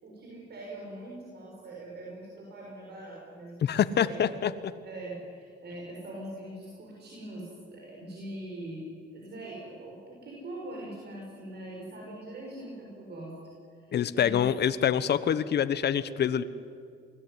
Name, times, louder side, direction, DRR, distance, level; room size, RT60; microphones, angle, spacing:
voice 1, 0.0-4.4 4.8-8.8 9.1-13.3 13.7-14.5, right 1 dB, 55° right, -2 dB, 6.8 m, -42 dB
voice 2, 3.6-4.5 13.9-16.4, left 9 dB, 60° left, 13 dB, 1.1 m, -26 dB
27.5 x 19.5 x 9.6 m, 2.3 s
cardioid pair, 90°, 20 cm